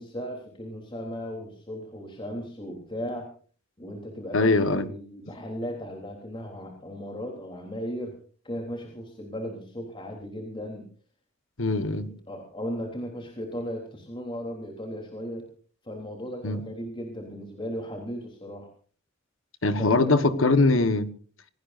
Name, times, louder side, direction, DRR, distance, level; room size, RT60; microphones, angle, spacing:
voice 1, 0.0-3.3 3.8-8.1 8.4-10.9 12.3-15.5 15.8-18.7 19.8-20.6, equal, 25° left, 3.5 m, -36 dB
voice 2, 4.3-4.9 11.6-12.1 16.4-16.6 19.6-21.1, left 3 dB, 70° left, 1.5 m, -22 dB
26.0 x 18.5 x 2.6 m
head